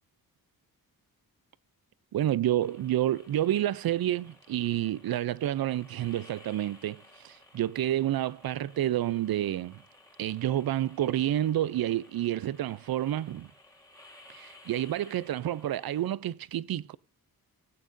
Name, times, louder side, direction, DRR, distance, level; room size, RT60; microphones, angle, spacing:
voice 1, 2.1-9.8 10.2-13.5 14.3-17.0, right 12 dB, 70° right, 0.5 m, -29 dB
sound 1, 2.6-16.0, left 1 dB, 10° left, 1.9 m, -56 dB
16.0 x 8.6 x 2.6 m
wide cardioid pair, 165°, 37 cm